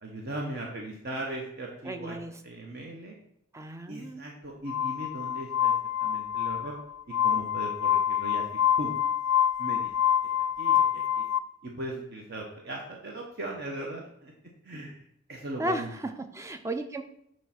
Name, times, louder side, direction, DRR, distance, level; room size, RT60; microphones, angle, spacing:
voice 1, 0.0-2.2 2.4-3.1 3.9-5.7 6.0-6.8 7.2-8.4 8.8-8.9 9.6-9.9 10.6-11.2 11.6-14.3 14.6-15.0 15.3-15.9, right 1 dB, 50° right, -1 dB, 0.9 m, -38 dB
voice 2, 1.8-2.4 3.5-4.3 15.6-17.0, right 1 dB, 15° right, 8 dB, 0.4 m, -34 dB
Glass, 4.7-11.4, left 10 dB, 75° left, 0.4 m, -26 dB
6.9 x 3.2 x 5.7 m, 0.75 s
head